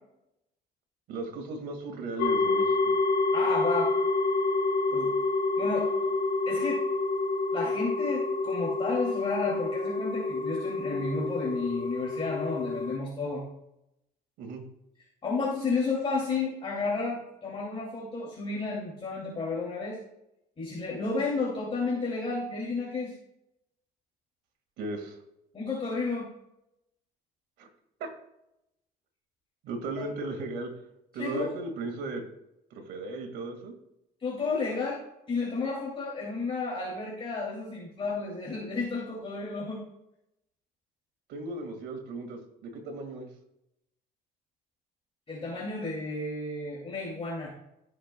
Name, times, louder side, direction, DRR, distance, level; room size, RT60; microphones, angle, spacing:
voice 1, 1.1-3.0 14.4-14.6 24.8-25.2 27.6-27.7 28.0-28.1 29.6-30.7 31.1-32.2 32.7-33.7 41.3-43.3, right 3 dB, 85° right, 3 dB, 1.9 m, -36 dB
sound 1, 2.2-13.0, left 3 dB, 90° left, 0.9 m, -28 dB
voice 2, 3.3-3.9 4.9-5.1 5.6-5.9 6.5-6.8 7.5-13.4 15.2-20.0 20.6-23.1 25.5-26.3 30.0-30.1 31.2-31.5 34.2-35.0 35.3-39.8 45.3-47.5, left 3 dB, 35° left, -5 dB, 2.5 m, -32 dB
14.0 x 6.6 x 2.2 m, 0.83 s
cardioid pair, 110°, 17 cm